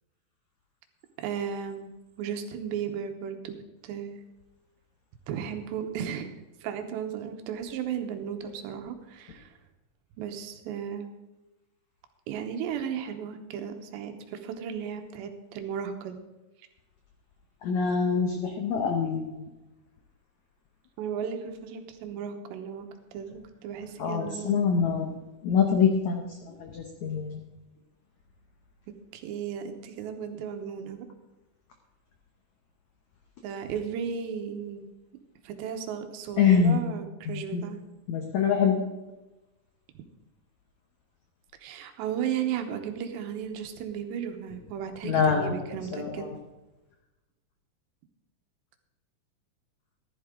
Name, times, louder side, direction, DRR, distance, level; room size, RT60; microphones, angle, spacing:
voice 1, 1.2-1.9 2.2-3.6 3.8-4.2 5.3-9.6 10.2-11.1 12.3-16.2 21.0-24.6 29.1-31.1 33.4-34.8 35.4-37.8 41.6-46.3, right 8 dB, 90° right, 6 dB, 3.3 m, -35 dB
voice 2, 17.6-19.5 24.0-25.1 25.4-27.4 36.4-36.9 37.3-37.7 38.1-38.8 45.0-45.6 45.9-46.4, left 6 dB, 85° left, 3 dB, 1.6 m, -25 dB
14.5 x 11.5 x 3.7 m, 1.1 s
omnidirectional pair, 4.9 m